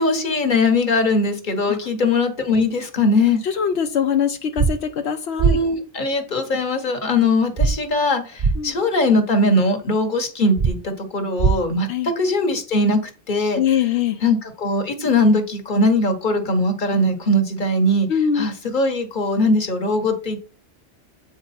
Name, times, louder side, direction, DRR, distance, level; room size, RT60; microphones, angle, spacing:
voice 1, 0.0-3.4 5.4-11.9 12.2-13.0 13.3-13.6 14.2-18.1 18.4-20.4, left 2 dB, 45° left, 6 dB, 1.4 m, -20 dB
voice 2, 3.4-5.6 8.5-8.8 11.9-12.1 13.5-14.2 18.1-18.5, left 8 dB, 85° left, 6 dB, 0.9 m, -22 dB
sound 1, 4.6-4.7 5.4-5.5 7.6-7.7 8.4-8.5 10.6-10.7 11.4-11.5, right 5 dB, 40° right, 0.6 m, -17 dB
8.0 x 4.6 x 4.2 m, 0.35 s
omnidirectional pair, 1.1 m